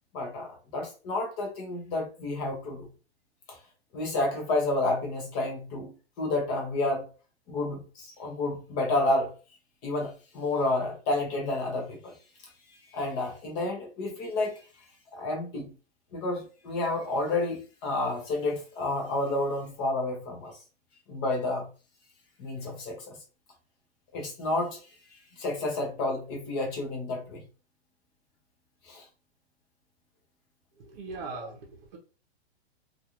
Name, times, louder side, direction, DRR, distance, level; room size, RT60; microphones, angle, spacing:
voice 1, 0.1-2.9 3.5-3.6 3.9-7.1 7.5-9.3 9.8-12.1 12.4-12.5 12.9-14.6 15.1-15.7 16.1-20.6 21.1-21.7 22.4-23.2 24.1-24.8 25.4-27.4 28.8-29.0 31.4-31.5, left 2 dB, 20° left, 2 dB, 0.5 m, -30 dB
voice 2, 30.7-32.0, right 4 dB, 45° right, -2 dB, 0.7 m, -41 dB
2.4 x 2.4 x 2.8 m, 0.34 s
hypercardioid pair, 160°, 33 cm